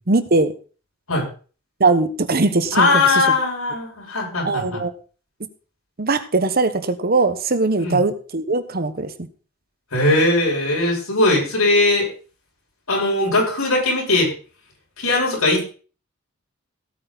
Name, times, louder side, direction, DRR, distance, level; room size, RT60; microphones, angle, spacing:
voice 1, 0.1-0.5 1.8-3.2 4.4-4.9 6.0-9.3, right 3 dB, 45° right, 11 dB, 1.2 m, -20 dB
voice 2, 2.7-4.8 7.8-8.0 9.9-12.1 12.9-14.3 15.0-15.6, left 2 dB, 90° left, -2 dB, 7.0 m, -19 dB
17.0 x 8.8 x 4.1 m, 0.38 s
head